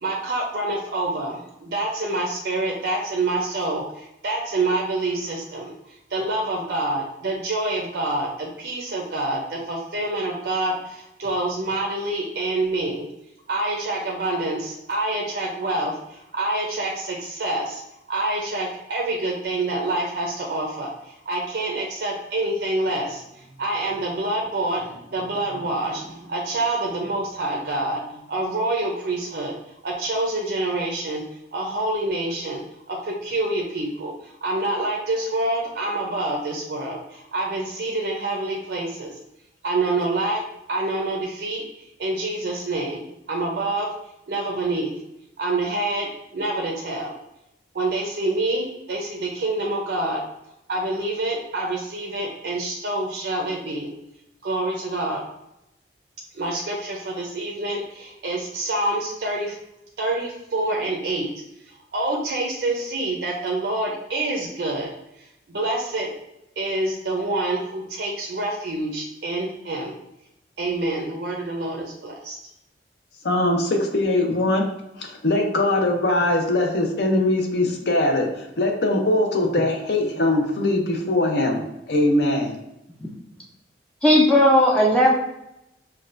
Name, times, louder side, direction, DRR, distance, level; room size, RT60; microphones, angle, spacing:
voice 1, 0.0-13.0 13.5-17.8 18.1-29.5 29.8-31.2 31.5-32.6 32.9-39.2 39.6-40.4 40.7-41.6 42.0-43.9 44.3-44.9 45.4-47.1 47.7-50.2 50.7-53.9 54.4-55.2 56.3-59.6 60.0-61.3 61.6-64.9 65.2-66.1 66.6-70.0 70.6-72.4, right 2 dB, 65° right, -1 dB, 0.5 m, -27 dB
voice 2, 73.2-74.7 75.0-82.6, left 2 dB, 65° left, 3 dB, 0.7 m, -21 dB
voice 3, 84.0-85.1, left 1 dB, 5° left, -3 dB, 0.4 m, -16 dB
5.3 x 2.3 x 2.5 m, 0.85 s
head